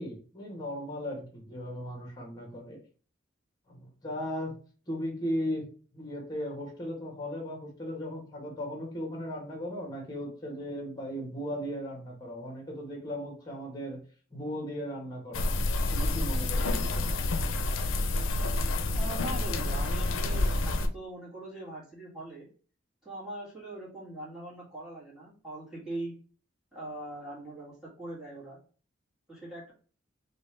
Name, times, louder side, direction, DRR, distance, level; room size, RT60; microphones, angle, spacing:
voice 1, 0.0-2.8 3.7-4.5 4.9-5.7 5.9-14.0 14.3-15.5 15.9-17.1, equal, 20° left, 1 dB, 1.2 m, -37 dB
sound 1, 15.3-20.9, left 2 dB, 85° left, 0.5 m, -28 dB
voice 2, 18.9-22.5 23.0-26.1 26.7-28.6 29.3-29.7, right 1 dB, ahead, -9 dB, 1.7 m, -41 dB
5.2 x 2.4 x 3.2 m, 0.40 s
head